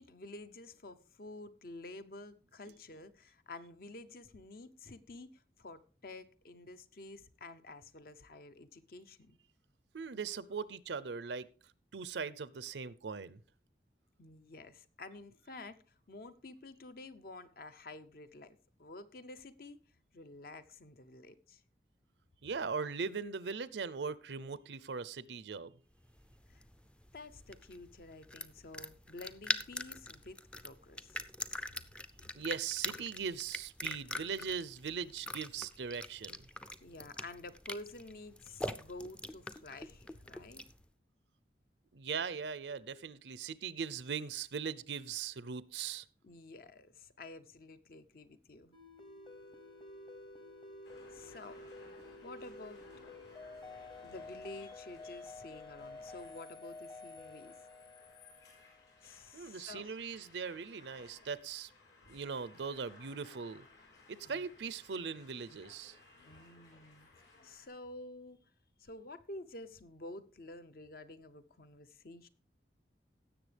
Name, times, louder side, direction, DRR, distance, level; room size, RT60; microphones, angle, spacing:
voice 1, 0.0-9.4 14.2-15.8 16.1-19.8 20.1-21.6 26.5-26.6 27.1-31.2 36.8-40.6 46.2-48.8 51.1-51.7 52.2-52.8 54.0-57.5 59.0-60.0 62.1-62.2 64.2-64.4 66.3-67.1 67.4-68.4 68.8-72.3, left 2 dB, 55° left, 11 dB, 0.7 m, -50 dB
voice 2, 9.9-11.5 11.9-13.4 22.4-25.7 32.4-36.4 41.9-46.1 59.3-61.7 62.1-63.7 64.1-66.0, right 5 dB, 85° right, 17 dB, 0.6 m, -40 dB
sound 1, 26.0-40.8, left 1 dB, 5° left, 0.4 m, -43 dB
sound 2, 48.7-59.1, left 2 dB, 30° left, 0.9 m, -51 dB
sound 3, 50.8-67.7, left 3 dB, 80° left, 4.3 m, -60 dB
17.0 x 7.1 x 3.3 m, 0.37 s
head